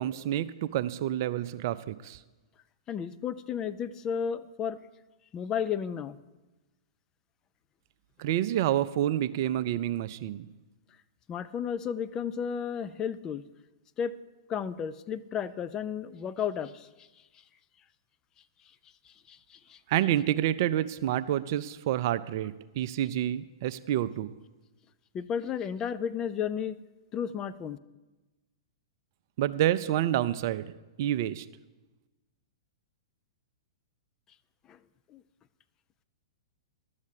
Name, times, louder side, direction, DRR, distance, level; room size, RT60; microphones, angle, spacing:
voice 1, 0.0-2.2 8.2-10.5 19.9-24.3 29.4-30.7 31.0-31.5, right 12 dB, 50° right, 14 dB, 0.5 m, -28 dB
voice 2, 2.9-4.8 5.3-6.2 11.3-13.4 14.0-14.1 14.5-16.9 19.3-19.8 25.1-26.8 27.1-27.8 34.7-34.8 35.1-35.2, left 8 dB, 25° left, 13 dB, 0.4 m, -33 dB
11.5 x 7.3 x 6.6 m, 1.1 s
figure-of-eight pair, 110°, 2 cm